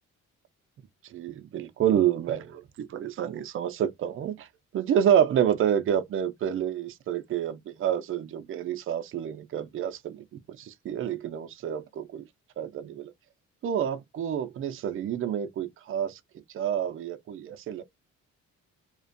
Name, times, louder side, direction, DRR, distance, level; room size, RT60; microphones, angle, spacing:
voice 1, 1.0-4.5 4.7-10.2 10.6-12.2 12.6-13.1 13.6-16.2 16.5-17.9, right 9 dB, 45° right, 0.5 m, -28 dB
2.4 x 2.2 x 2.5 m
cardioid pair, 90°, 30 cm